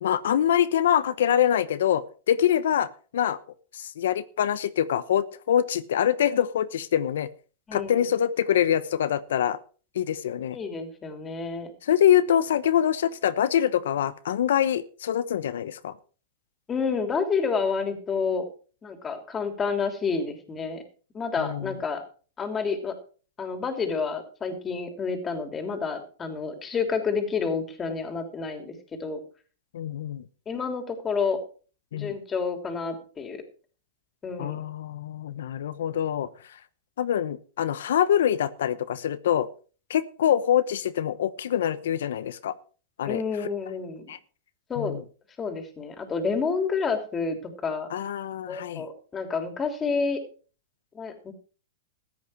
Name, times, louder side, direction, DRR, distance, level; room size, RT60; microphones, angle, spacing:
voice 1, 0.0-3.4 3.7-7.3 7.7-9.6 9.9-10.6 11.8-15.9 21.4-21.7 29.7-30.2 31.9-32.1 34.4-36.3 37.0-39.5 39.9-42.5 43.0-43.2 44.1-44.2 44.8-45.0 47.9-48.8, left 10 dB, 80° left, 15 dB, 0.9 m, -25 dB
voice 2, 10.5-11.7 16.7-18.4 18.8-20.8 21.1-22.0 22.4-22.9 23.4-28.7 29.0-29.2 30.5-31.4 31.9-33.4 34.2-34.6 43.1-44.1 44.7-45.0 45.4-47.9 48.5-50.2 50.9-51.3, left 5 dB, 20° left, 6 dB, 3.0 m, -29 dB
14.5 x 9.5 x 4.7 m, 0.39 s
hypercardioid pair, 125°, 0 cm